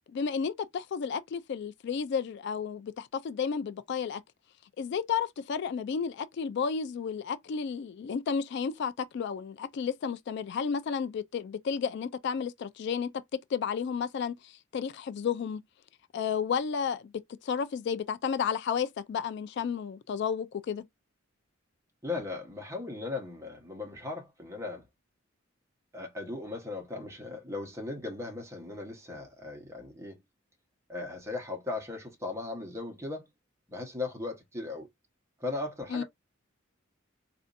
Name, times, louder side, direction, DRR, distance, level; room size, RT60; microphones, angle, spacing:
voice 1, 0.1-4.2 4.8-13.1 13.5-15.6 16.1-17.1 17.4-20.8 35.9-36.0, left 6 dB, 60° left, 0.3 m, -32 dB
voice 2, 22.0-24.9 25.9-30.2 30.9-33.3 33.7-34.9 35.4-36.0, left 3 dB, 15° right, 1.1 m, -37 dB
4.2 x 2.6 x 2.5 m
head